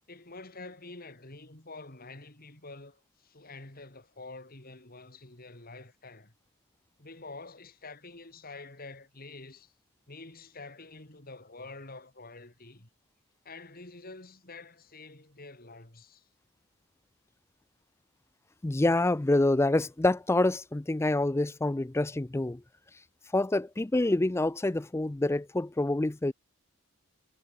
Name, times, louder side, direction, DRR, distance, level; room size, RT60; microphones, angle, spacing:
voice 1, 0.1-6.3 7.0-9.7 10.1-12.9 13.4-16.3, left 3 dB, 45° left, 3.3 m, -47 dB
voice 2, 18.6-22.6 23.3-26.3, left 2 dB, 10° left, 0.4 m, -27 dB
head